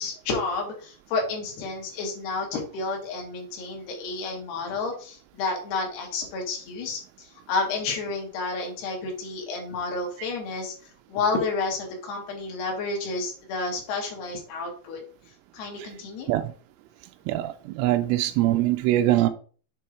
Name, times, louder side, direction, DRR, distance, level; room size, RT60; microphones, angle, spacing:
voice 1, 0.0-10.7 11.1-15.0 15.5-16.3 18.1-18.2, left 3 dB, 60° left, 1 dB, 3.4 m, -30 dB
voice 2, 17.3-19.3, right 14 dB, 85° right, 10 dB, 2.9 m, -23 dB
7.7 x 3.5 x 4.5 m, 0.41 s
omnidirectional pair, 5.8 m